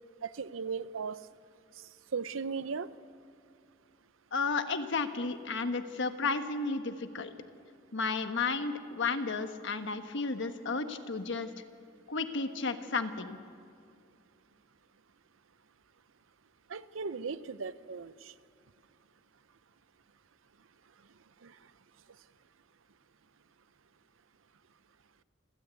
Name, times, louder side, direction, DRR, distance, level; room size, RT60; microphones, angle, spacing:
voice 1, 0.2-1.2 1.7-2.9 16.7-18.3 21.4-21.6, right 5 dB, 80° right, 15 dB, 0.7 m, -37 dB
voice 2, 4.3-7.3 7.9-11.5 12.1-13.4, left 4 dB, 65° left, 8 dB, 1.3 m, -33 dB
27.5 x 13.5 x 8.3 m, 2.3 s
head